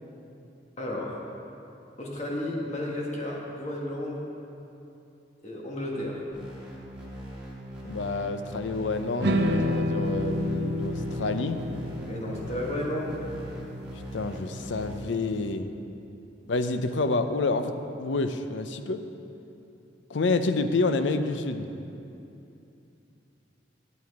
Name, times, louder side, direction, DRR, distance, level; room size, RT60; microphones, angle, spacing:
voice 1, 0.8-1.2 2.0-4.2 5.4-6.2 12.1-13.1, left 1 dB, 40° left, -3 dB, 1.5 m, -32 dB
sound 1, 6.3-14.9, right 1 dB, 5° right, 1.9 m, -41 dB
voice 2, 7.8-11.6 14.1-15.7 16.5-19.0 20.1-21.7, left 3 dB, 90° left, 9 dB, 0.6 m, -28 dB
sound 2, 9.2-15.5, equal, 65° right, 0.6 m, -31 dB
9.4 x 9.3 x 4.7 m, 2.8 s
head